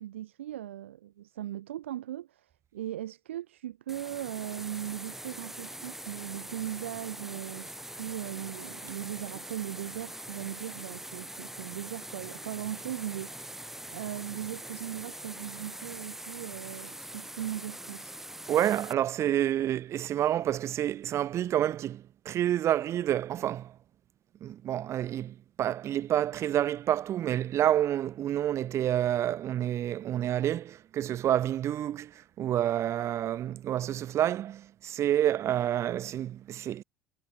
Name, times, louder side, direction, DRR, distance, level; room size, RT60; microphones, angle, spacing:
voice 1, 0.0-18.1, right 12 dB, 75° right, 1.8 m, -39 dB
sound 1, 3.9-18.9, right 1 dB, 5° right, 4.0 m, -43 dB
voice 2, 18.5-23.7 24.4-32.1 32.4-36.8, right 11 dB, 45° right, 1.8 m, -28 dB
figure-of-eight pair, 60°, 7 cm